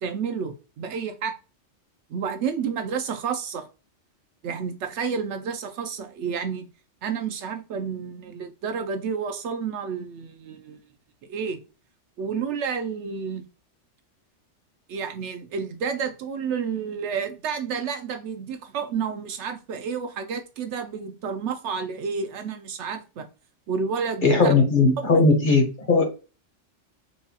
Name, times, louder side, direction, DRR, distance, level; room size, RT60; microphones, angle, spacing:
voice 1, 0.0-1.3 2.1-3.7 4.4-6.7 7.0-10.8 11.3-11.6 12.2-13.4 14.9-23.3 23.7-24.5 25.1-25.2, right 6 dB, 75° right, 0.9 m, -30 dB
voice 2, 24.2-26.1, left 3 dB, 45° left, 0.9 m, -18 dB
4.6 x 2.3 x 2.8 m
omnidirectional pair, 1.3 m